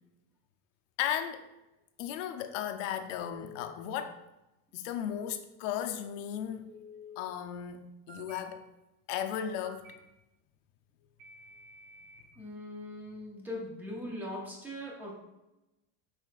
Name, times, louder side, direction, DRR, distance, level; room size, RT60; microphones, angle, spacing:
voice 1, 1.0-1.5 2.0-4.2 4.7-6.7 7.2-8.7 9.1-9.9, left 9 dB, 70° left, 0.5 m, -35 dB
Telephone, 3.2-3.7 6.7-7.2 8.1-8.4 9.6-9.9 11.2-12.2, left 3 dB, 55° right, 1.2 m, -50 dB
voice 2, 12.4-15.1, left 1 dB, 5° right, 0.4 m, -40 dB
5.8 x 3.1 x 2.4 m
cardioid pair, 170°, 39 cm